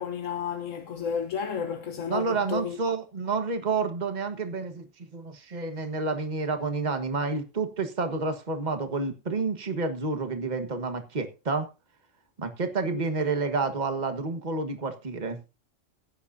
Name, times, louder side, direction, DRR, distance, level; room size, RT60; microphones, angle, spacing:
voice 1, 0.0-2.8 12.9-13.0, left 7 dB, 85° left, 1.5 m, -32 dB
voice 2, 2.1-11.7 12.4-15.4, right 4 dB, 35° right, 1.6 m, -29 dB
17.0 x 10.5 x 2.7 m
omnidirectional pair, 1.3 m